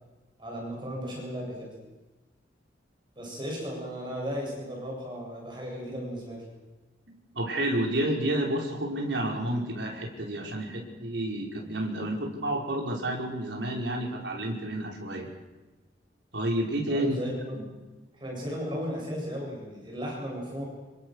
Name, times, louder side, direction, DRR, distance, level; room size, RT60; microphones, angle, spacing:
voice 1, 0.4-1.8 3.2-6.4 16.9-17.6 18.2-20.7, equal, 25° right, -1 dB, 7.5 m, -35 dB
voice 2, 7.3-15.3 16.3-17.2 17.5-17.7, right 1 dB, 75° right, 0 dB, 5.2 m, -30 dB
27.5 x 22.5 x 6.5 m, 1.2 s
head